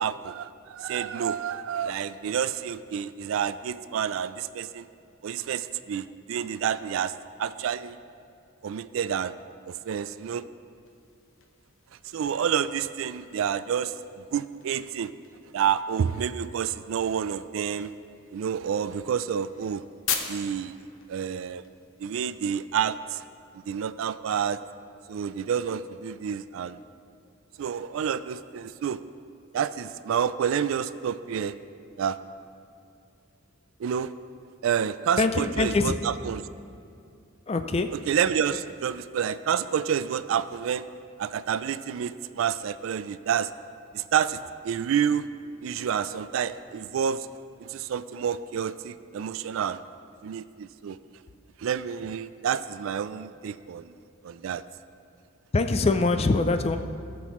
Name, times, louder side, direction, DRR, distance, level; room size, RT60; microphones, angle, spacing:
voice 1, 0.0-4.9 5.2-8.0 8.6-9.3 9.7-10.4 12.1-15.1 15.5-17.9 18.3-19.8 20.3-21.6 22.0-23.2 23.7-24.6 25.1-26.8 27.6-29.0 29.5-31.6 32.0-32.2 33.8-34.1 34.6-36.4 38.1-40.9 41.2-43.5 43.9-45.3 45.6-47.3 47.6-49.8 50.2-51.0 51.6-53.9 54.2-54.6, right 8 dB, 70° right, 14 dB, 0.3 m, -29 dB
sound 1, 10.8-22.6, left 6 dB, 70° left, 0.8 m, -41 dB
voice 2, 35.2-36.0 37.5-37.9 55.5-56.8, left 3 dB, 30° left, 8 dB, 0.4 m, -23 dB
17.0 x 6.1 x 3.1 m, 2.4 s
head